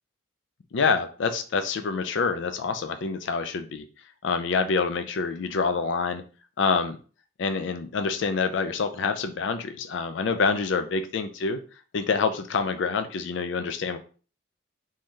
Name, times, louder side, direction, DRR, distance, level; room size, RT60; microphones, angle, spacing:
voice 1, 0.7-3.9 4.2-6.2 6.6-7.0 7.4-11.6 11.9-14.0, left 5 dB, 65° left, 8 dB, 0.4 m, -26 dB
3.8 x 2.7 x 3.1 m, 0.39 s
head